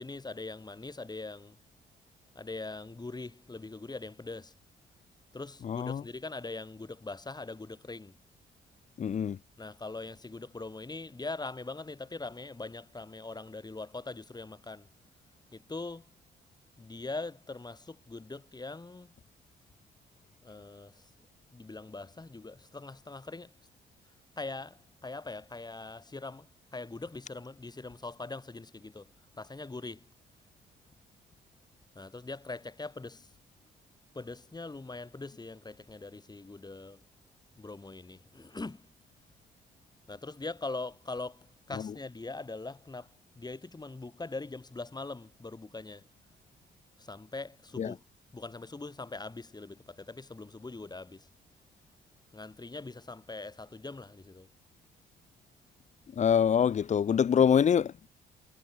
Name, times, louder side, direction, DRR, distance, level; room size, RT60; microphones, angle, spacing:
voice 1, 0.0-1.6 2.3-4.5 5.3-8.2 9.6-14.9 15.5-16.1 16.8-19.1 20.4-21.1 21.5-23.6 24.4-30.1 31.9-33.3 34.1-37.0 37.6-38.9 40.1-46.1 47.0-48.0 48.3-51.3 52.3-54.5, left 3 dB, 20° left, 7.6 m, -42 dB
voice 2, 5.6-6.0 9.0-9.4 47.8-47.9 56.2-58.1, left 8 dB, 35° left, 0.6 m, -25 dB
cardioid pair, 90°, 20 cm